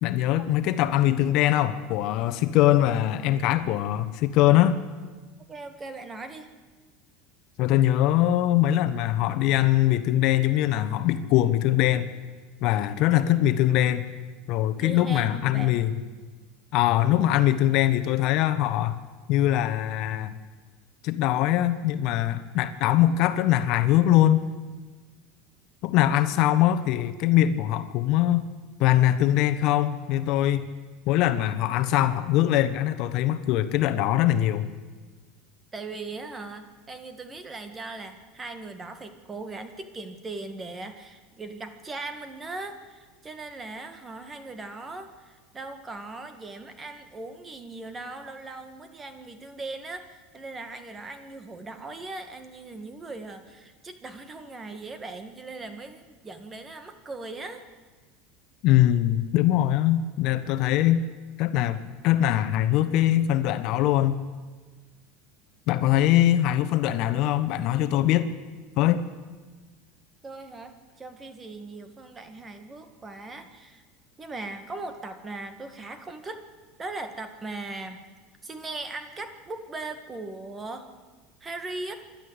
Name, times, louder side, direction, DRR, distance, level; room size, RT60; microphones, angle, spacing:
voice 1, 0.0-4.8 7.6-12.1 12.6-14.0 14.5-15.9 16.7-19.0 19.3-20.4 21.0-24.5 25.8-28.5 28.8-30.7 31.1-34.7 58.6-61.0 61.4-64.2 65.7-68.3 68.8-69.1, left 13 dB, 55° left, 11 dB, 1.2 m, -22 dB
voice 2, 5.5-6.5 14.8-15.8 35.7-57.6 70.2-73.8 74.2-76.4 76.8-78.0 78.4-80.9 81.4-82.0, right 3 dB, 20° right, 8 dB, 1.9 m, -39 dB
26.5 x 12.0 x 8.2 m, 1.4 s
supercardioid pair, 135°, 0 cm